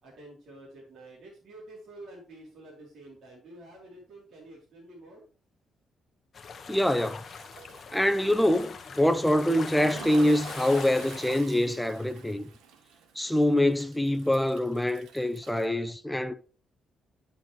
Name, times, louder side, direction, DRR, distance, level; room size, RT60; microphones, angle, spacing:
voice 1, 0.0-5.2, right 1 dB, 60° right, 3.3 m, -49 dB
sound 1, 6.3-11.4, left 5 dB, 50° left, 0.9 m, -42 dB
voice 2, 6.7-7.2 7.9-12.5 13.2-16.3, left 1 dB, 5° left, 0.8 m, -25 dB
Toilet flush, 6.8-15.7, right 6 dB, 90° right, 1.3 m, -48 dB
11.0 x 5.6 x 3.1 m
cardioid pair, 95°, 0 cm